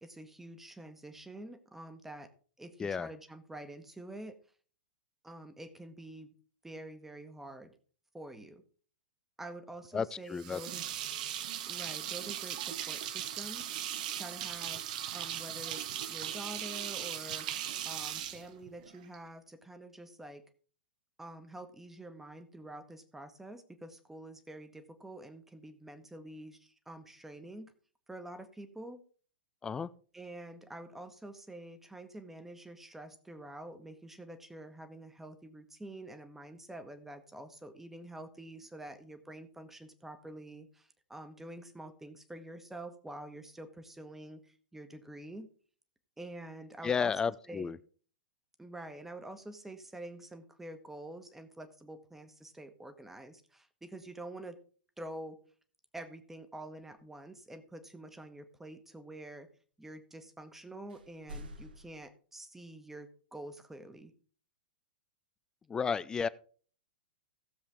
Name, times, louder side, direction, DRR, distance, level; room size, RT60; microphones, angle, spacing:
voice 1, 0.0-2.3 2.6-4.4 5.2-6.3 6.6-7.7 8.1-8.6 9.4-10.8 11.7-13.6 14.1-14.8 15.1-17.5 17.8-20.4 21.2-27.7 28.1-29.0 30.1-45.5 46.2-47.1 47.5-47.7 48.6-54.6 55.0-55.4 55.9-59.5 59.8-64.1, right 1 dB, 5° right, 1.3 m, -47 dB
voice 2, 9.9-10.6 29.6-29.9 46.8-47.8 65.7-66.3, left 6 dB, 15° left, 0.4 m, -32 dB
sound 1, 10.4-19.2, right 11 dB, 50° right, 1.0 m, -38 dB
sound 2, 60.9-62.1, equal, 70° right, 1.4 m, -47 dB
16.0 x 7.2 x 3.5 m
figure-of-eight pair, 105°, 5 cm